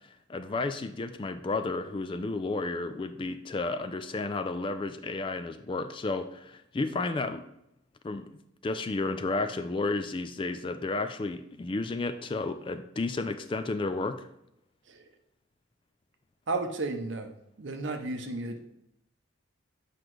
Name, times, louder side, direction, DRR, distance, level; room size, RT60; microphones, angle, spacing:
voice 1, 0.3-7.4 8.0-8.3 8.6-14.3, left 3 dB, 25° left, 10 dB, 0.3 m, -32 dB
voice 2, 16.5-18.7, right 3 dB, 60° right, 5 dB, 0.7 m, -34 dB
7.8 x 5.0 x 3.1 m, 0.83 s
head